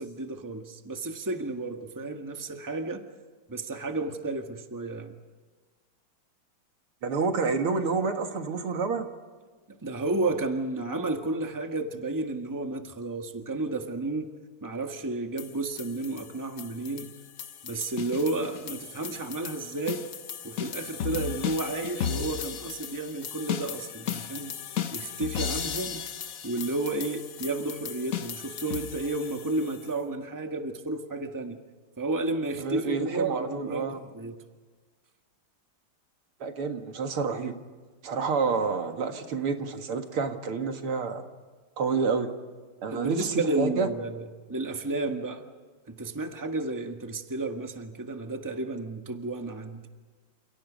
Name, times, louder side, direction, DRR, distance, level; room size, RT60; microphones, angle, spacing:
voice 1, 0.0-3.0 3.5-5.1 9.8-14.3 14.6-17.1 17.6-20.0 20.4-24.6 24.9-26.0 26.4-31.6 32.0-34.4 42.9-45.4 45.9-49.8, right 2 dB, 10° right, 4 dB, 1.5 m, -32 dB
voice 2, 7.0-9.0 32.6-34.0 36.4-37.5 38.0-41.2 41.8-42.3 42.8-43.9, right 5 dB, 80° right, 5 dB, 2.8 m, -29 dB
sound 1, 15.4-29.9, left 8 dB, 50° left, 1.1 m, -36 dB
30.0 x 29.0 x 5.3 m, 1.4 s
omnidirectional pair, 2.4 m